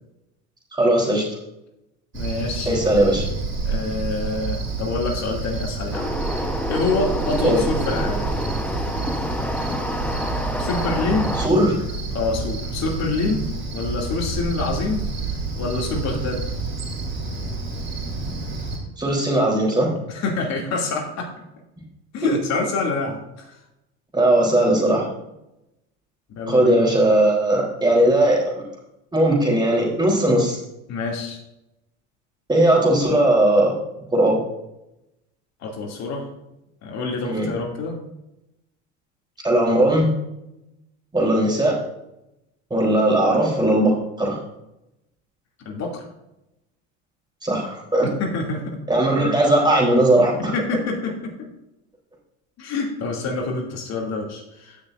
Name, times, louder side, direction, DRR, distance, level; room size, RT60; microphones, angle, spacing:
voice 1, 0.7-1.2 2.7-3.3 7.4-7.6 11.4-11.9 19.0-19.9 22.2-22.3 24.1-25.0 26.5-28.6 29.1-30.6 32.5-33.7 34.1-34.4 37.2-37.5 39.4-40.1 41.1-41.8 42.7-44.4 47.4-48.1 48.9-50.5, right 1 dB, 10° right, -2 dB, 3.6 m, -18 dB
voice 2, 2.1-2.8 3.6-8.3 10.6-11.3 12.1-13.5 13.7-15.0 15.5-16.4 20.1-21.3 22.1-23.6 26.3-26.8 30.9-31.4 35.6-36.3 36.8-38.0 45.6-46.0 48.0-48.8 50.5-51.3 52.6-54.8, left 3 dB, 50° left, 0 dB, 2.7 m, -26 dB
Cricket, 2.1-18.8, right 3 dB, 35° right, 3.6 m, -29 dB
sound 1, 5.9-11.5, equal, 5° left, 1.0 m, -28 dB
16.0 x 6.5 x 2.6 m, 0.89 s
supercardioid pair, 105°, 34 cm